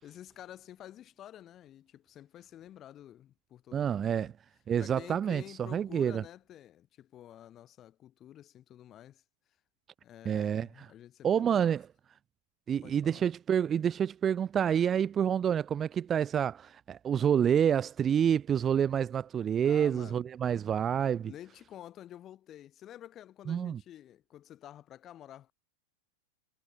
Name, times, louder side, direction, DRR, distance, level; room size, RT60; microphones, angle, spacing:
voice 1, 0.0-4.3 4.8-9.2 10.0-11.6 12.8-13.3 19.6-20.2 21.2-25.5, left 11 dB, 30° left, 2.7 m, -50 dB
voice 2, 3.7-4.3 4.7-5.4 5.7-6.2 10.3-10.9 11.2-11.8 12.7-21.3 23.5-23.8, right 8 dB, 25° right, 0.4 m, -28 dB
figure-of-eight pair, 90°, 0 cm